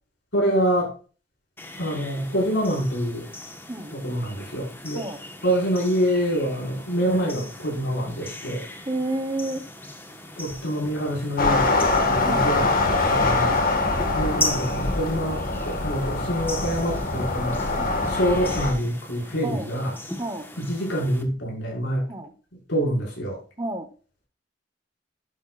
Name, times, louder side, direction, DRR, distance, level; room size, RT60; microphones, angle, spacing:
voice 1, 0.3-0.9 1.8-3.3 3.9-5.0 5.4-8.6 10.4-11.7 12.1-12.7 13.1-13.6 14.1-17.6 18.0-20.0 20.6-22.0 22.7-23.4, equal, 75° left, -4 dB, 5.9 m, -26 dB
sound 1, 1.6-21.2, left 2 dB, 10° left, 1.4 m, -38 dB
voice 2, 8.9-9.6 12.2-12.5 13.1-13.4 17.8-18.2 19.4-19.7 20.2-20.4 22.1-22.3 23.6-23.9, right 2 dB, 20° right, 8 dB, 1.2 m, -30 dB
sound 2, 11.4-18.7, left 3 dB, 50° left, 1.9 m, -23 dB
11.5 x 9.6 x 2.5 m, 0.37 s
head